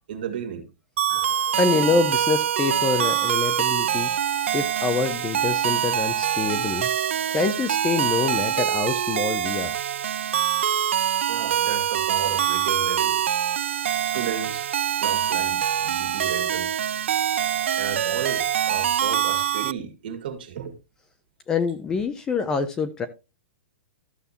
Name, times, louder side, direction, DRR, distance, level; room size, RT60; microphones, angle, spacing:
voice 1, 0.1-0.7 1.7-1.8 11.3-13.2 14.0-14.7 15.0-16.8 17.8-20.8, right 8 dB, 50° right, 2.1 m, -33 dB
sound 1, 1.0-19.7, right 10 dB, 85° right, 0.4 m, -24 dB
voice 2, 1.1-4.1 4.5-6.9 7.3-9.7 21.5-23.1, left 5 dB, 10° left, 0.4 m, -26 dB
13.5 x 6.8 x 2.8 m
hypercardioid pair, 175°, 7 cm